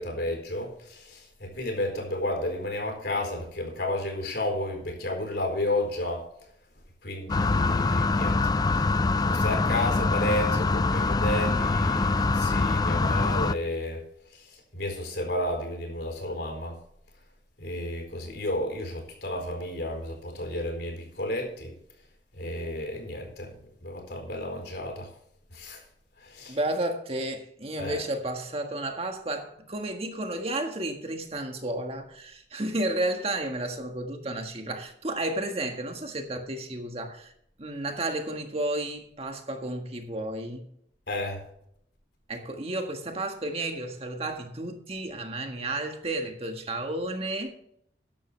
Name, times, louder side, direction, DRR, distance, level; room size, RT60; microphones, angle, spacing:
voice 1, 0.0-6.2 7.0-8.8 9.2-14.0 14.3-16.7 17.6-21.7 22.4-23.5 23.8-25.1 25.5-25.8 26.2-26.6 27.8-28.0 41.1-41.4, left 1 dB, 65° left, 4.4 m, -32 dB
sound 1, 7.3-13.5, left 3 dB, 20° left, 0.3 m, -24 dB
voice 2, 26.5-37.3 37.6-40.7 42.3-47.5, right 1 dB, 35° right, 1.7 m, -32 dB
13.5 x 11.0 x 3.4 m
head